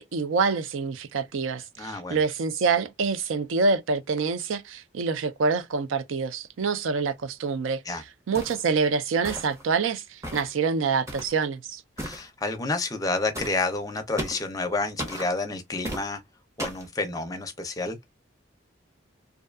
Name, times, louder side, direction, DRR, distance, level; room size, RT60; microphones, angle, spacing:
voice 1, 0.0-7.8 8.3-11.8, right 4 dB, 80° right, 0.4 m, -26 dB
voice 2, 1.8-2.2 7.9-8.0 12.0-16.2 16.6-18.0, left 3 dB, 20° left, 0.5 m, -29 dB
sound 1, 8.3-8.7 9.2-9.7 10.2-10.5 11.1-11.4 12.0-12.2 13.3-13.6 14.2-14.5 15.0-15.3 15.8-16.1 16.6-16.9, right 1 dB, 15° right, 0.7 m, -34 dB
2.6 x 2.3 x 2.2 m
head